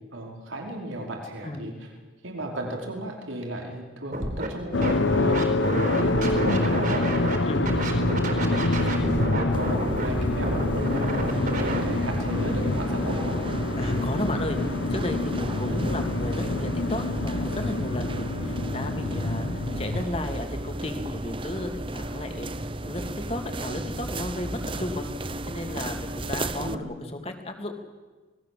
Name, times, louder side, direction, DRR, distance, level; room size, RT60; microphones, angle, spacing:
voice 1, 0.1-1.7 2.2-13.4 15.7-15.9 26.6-26.9, right 1 dB, 85° right, 1 dB, 5.0 m, -35 dB
Scratching (performance technique), 4.1-4.5 4.8-7.4 7.6-11.8, right 2 dB, 45° right, 4.2 m, -30 dB
sound 1, 4.7-20.1, left 2 dB, 70° left, 1.3 m, -26 dB
sound 2, 9.5-26.7, right 1 dB, 25° right, 0.8 m, -34 dB
voice 2, 13.8-14.6 14.9-22.5 22.8-25.1 25.5-27.8, left 1 dB, 30° left, 5 dB, 2.9 m, -34 dB
27.0 x 20.5 x 7.8 m, 1.3 s
head